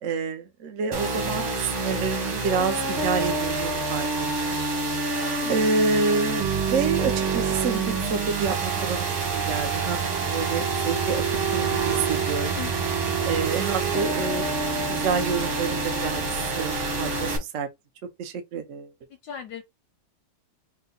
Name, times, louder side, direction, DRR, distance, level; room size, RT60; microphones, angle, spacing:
voice 1, 0.0-4.6 5.5-9.1 9.3-11.2 11.5-12.6 12.9-16.3 16.5-17.7 18.2-18.9, right 5 dB, 60° right, 0.8 m, -28 dB
sound 1, 0.9-17.4, right 4 dB, 80° right, 2.6 m, -27 dB
voice 2, 5.1-5.5 12.5-12.7 19.2-19.6, left 8 dB, 70° left, 1.0 m, -37 dB
5.3 x 2.2 x 3.9 m
omnidirectional pair, 2.3 m